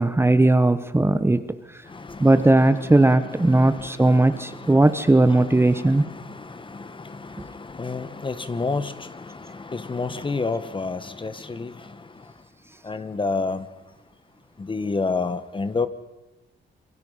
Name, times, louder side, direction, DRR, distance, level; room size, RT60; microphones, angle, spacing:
voice 1, 0.0-1.4 2.2-6.1, right 2 dB, 10° right, 11 dB, 1.1 m, -18 dB
voice 2, 1.9-12.0 12.8-13.7 14.6-15.9, left 4 dB, 25° left, 13 dB, 1.3 m, -31 dB
27.5 x 23.0 x 5.6 m, 1.0 s
cardioid pair, 95°, 20 cm